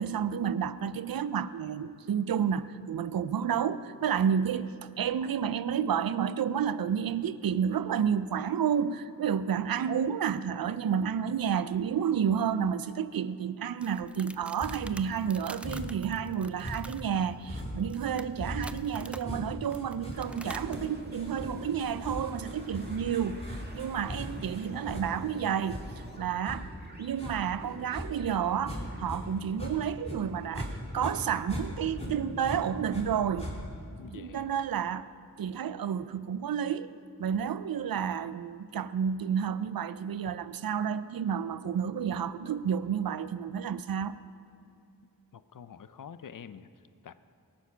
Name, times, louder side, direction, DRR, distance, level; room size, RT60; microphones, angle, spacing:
voice 1, 0.0-25.8 26.1-26.7 27.0-33.6 34.1-35.1 35.4-36.9 37.2-44.1, right 8 dB, 70° right, 15 dB, 0.5 m, -30 dB
sound 1, 13.8-20.9, right 1 dB, 5° right, 0.3 m, -47 dB
sound 2, 14.6-15.0 15.6-16.1 16.6-29.2 29.5-30.7 31.0-33.0 33.4-33.9, left 1 dB, 15° left, 2.5 m, -39 dB
sound 3, 20.1-31.5, right 1 dB, 25° right, 1.8 m, -50 dB
voice 2, 34.0-34.5 45.3-46.7 47.0-47.1, left 7 dB, 60° left, 13 dB, 0.6 m, -46 dB
18.5 x 7.2 x 5.7 m, 2.5 s
wide cardioid pair, 75°, 36 cm